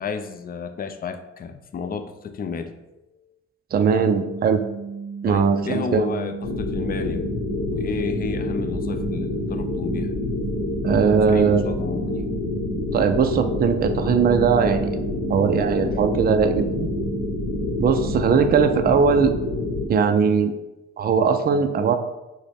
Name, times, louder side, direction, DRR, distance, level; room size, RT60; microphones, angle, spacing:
voice 1, 0.0-2.8 5.3-10.1 11.3-12.3, left 5 dB, 30° left, 8 dB, 0.4 m, -32 dB
voice 2, 3.7-4.6 5.2-6.1 10.8-11.6 12.9-15.0 15.3-16.9 17.8-19.3 19.9-20.5 21.0-22.0, right 6 dB, 30° right, 7 dB, 0.4 m, -19 dB
sound 1, 3.9-18.5, right 5 dB, 5° right, 1.3 m, -35 dB
sound 2, 6.4-19.9, left 2 dB, 80° left, 0.9 m, -27 dB
6.1 x 2.2 x 3.4 m, 0.97 s
cardioid pair, 90°, 30 cm